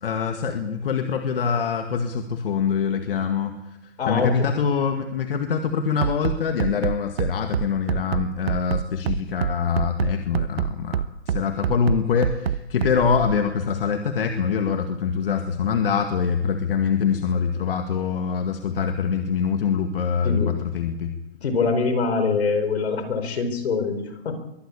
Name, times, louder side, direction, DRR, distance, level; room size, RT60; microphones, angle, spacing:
voice 1, 0.0-21.1, left 6 dB, 60° left, 6 dB, 2.0 m, -24 dB
voice 2, 4.0-4.5 20.2-20.5 21.4-24.3, left 4 dB, 75° left, 9 dB, 4.6 m, -24 dB
Bass drum, 6.0-13.4, right 9 dB, 70° right, 1.1 m, -25 dB
22.5 x 17.0 x 8.4 m, 0.90 s
hypercardioid pair, 170°, 32 cm